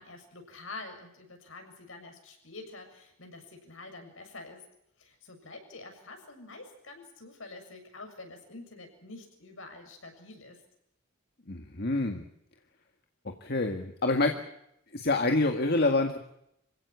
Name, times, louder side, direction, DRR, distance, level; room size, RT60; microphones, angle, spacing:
voice 1, 0.0-4.6 5.0-10.6, left 3 dB, 75° left, 4 dB, 7.2 m, -47 dB
voice 2, 11.5-12.2 13.4-14.3 14.9-16.2, left 2 dB, 50° left, 4 dB, 1.9 m, -26 dB
27.0 x 16.5 x 8.4 m, 0.78 s
head